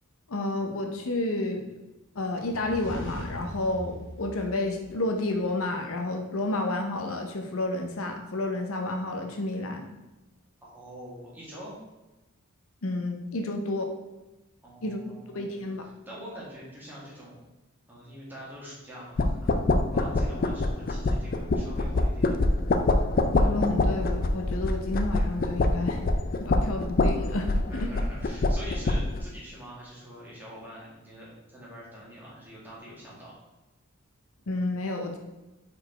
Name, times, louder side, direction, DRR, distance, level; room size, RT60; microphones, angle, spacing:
voice 1, 0.3-1.6 2.1-9.9 12.8-13.9 14.8-15.0 15.3-15.9 23.3-26.0 26.4-27.5 34.5-35.2, left 2 dB, 75° left, 3 dB, 0.8 m, -30 dB
sound 1, 2.4-5.4, left 1 dB, 60° left, 1.2 m, -41 dB
voice 2, 10.6-11.8 14.6-15.5 16.1-17.4 17.9-19.6 19.9-22.4 27.7-33.4, equal, 10° right, -7 dB, 1.9 m, -45 dB
sound 2, 19.2-29.2, left 2 dB, 40° left, 0.4 m, -25 dB
4.7 x 4.5 x 4.4 m, 1.0 s
head